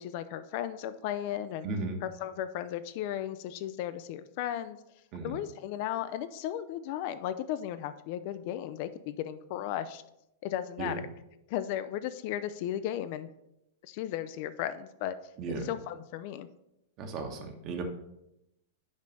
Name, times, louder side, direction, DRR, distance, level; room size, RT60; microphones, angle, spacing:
voice 1, 0.0-1.7 2.0-4.8 5.2-10.0 10.4-11.0 11.5-13.3 13.8-15.2 15.6-16.5, left 11 dB, 45° left, 12 dB, 0.4 m, -35 dB
voice 2, 1.6-2.0 5.1-5.4 10.8-11.0 15.4-15.7 17.0-17.8, right 4 dB, 35° right, 4 dB, 1.2 m, -35 dB
5.3 x 5.0 x 5.5 m, 0.85 s
figure-of-eight pair, 100°, 0 cm